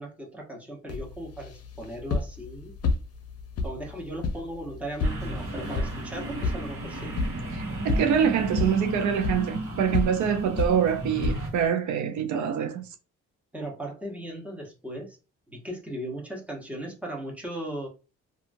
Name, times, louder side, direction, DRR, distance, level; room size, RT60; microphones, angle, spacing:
voice 1, 0.0-2.8 3.6-7.1 13.5-15.2 15.5-17.9, right 1 dB, 5° right, 1.0 m, -37 dB
sound 1, 0.9-11.7, left 3 dB, 55° left, 0.7 m, -32 dB
sound 2, 5.0-11.5, right 1 dB, 45° right, 1.1 m, -34 dB
voice 2, 7.5-12.9, right 8 dB, 70° right, 0.5 m, -25 dB
2.8 x 2.4 x 2.6 m
cardioid pair, 90°, 30 cm